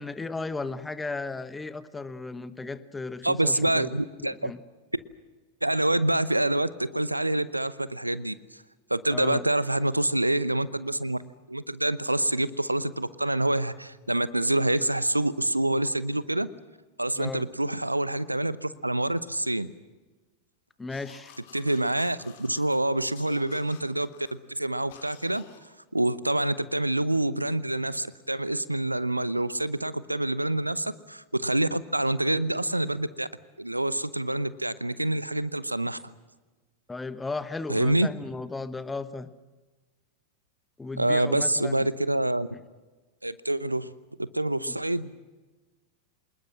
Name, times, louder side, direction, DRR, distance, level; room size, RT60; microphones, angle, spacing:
voice 1, 0.0-3.9 4.2-4.6 9.1-9.4 17.1-17.5 20.8-21.3 36.9-39.3 40.8-41.7 44.7-44.8, left 3 dB, 10° left, 14 dB, 1.3 m, -35 dB
voice 2, 3.2-4.5 5.6-8.6 8.9-11.2 11.5-16.5 17.0-19.7 21.5-24.1 24.5-25.4 25.9-33.3 33.6-36.0 37.7-38.1 41.0-42.5 43.2-43.9 44.2-45.1, right 1 dB, 85° right, 18 dB, 0.8 m, -26 dB
sound 1, 20.9-22.8 23.1-24.4 24.9-25.7, left 8 dB, 55° left, 3.3 m, -52 dB
26.5 x 20.5 x 7.6 m, 1.3 s
figure-of-eight pair, 90°, 0 cm